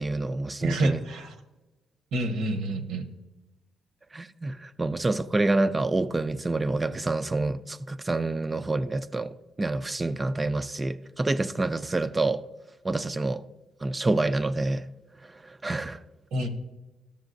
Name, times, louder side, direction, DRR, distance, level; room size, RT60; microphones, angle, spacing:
voice 1, 0.0-1.0 4.1-12.4 12.8-13.4 13.8-14.9 15.2-16.0, right 2 dB, 20° right, 0.3 m, -27 dB
voice 2, 0.6-1.3 2.1-3.0 16.3-16.5, right 1 dB, 80° right, 1.0 m, -28 dB
13.0 x 7.2 x 2.6 m
cardioid pair, 90°, 0 cm